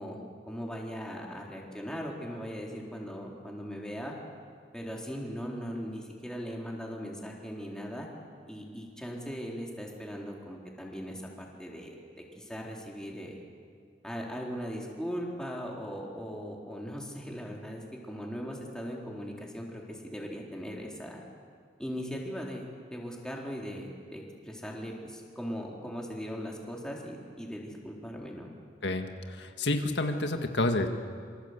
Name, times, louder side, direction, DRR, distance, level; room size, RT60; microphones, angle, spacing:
voice 1, 0.0-4.2 4.7-8.1 8.5-11.9 12.4-13.4 14.0-21.2 21.8-28.5, equal, 5° left, -2 dB, 4.0 m, -39 dB
voice 2, 28.8-30.9, left 2 dB, 85° left, 5 dB, 1.8 m, -29 dB
27.5 x 25.0 x 8.2 m, 2.2 s
head